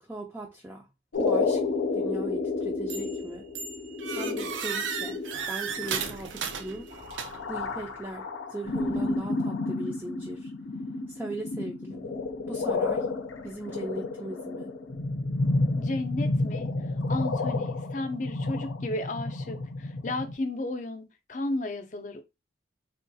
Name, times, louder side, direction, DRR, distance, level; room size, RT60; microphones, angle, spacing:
voice 1, 0.0-0.9 1.2-1.6 1.9-3.5 4.0-5.2 5.5-6.9 7.5-10.5 11.1-12.1 12.5-13.1 13.4-14.7, right 2 dB, 10° right, 0.4 m, -39 dB
sound 1, 1.1-20.3, left 3 dB, 90° left, 0.6 m, -31 dB
sound 2, 2.9-3.2 3.5-7.6, right 6 dB, 75° right, 0.4 m, -35 dB
voice 2, 15.8-16.7 17.1-22.2, left 2 dB, 40° left, 0.5 m, -33 dB
3.5 x 2.3 x 2.6 m
head